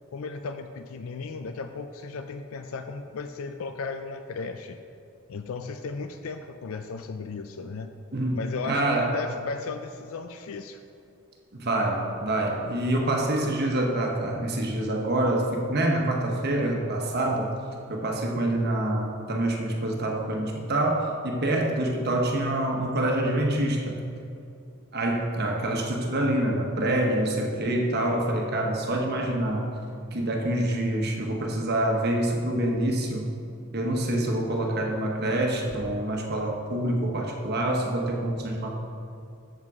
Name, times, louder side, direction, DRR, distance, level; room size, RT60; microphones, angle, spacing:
voice 1, 0.1-4.8 5.3-7.9 8.3-10.8, left 4 dB, 70° left, 8 dB, 0.4 m, -35 dB
voice 2, 8.1-9.2 11.5-17.5 17.9-24.0 24.9-29.7 30.1-33.3 33.7-38.7, right 1 dB, 50° right, 1 dB, 1.1 m, -26 dB
7.5 x 7.4 x 4.8 m, 2.6 s
head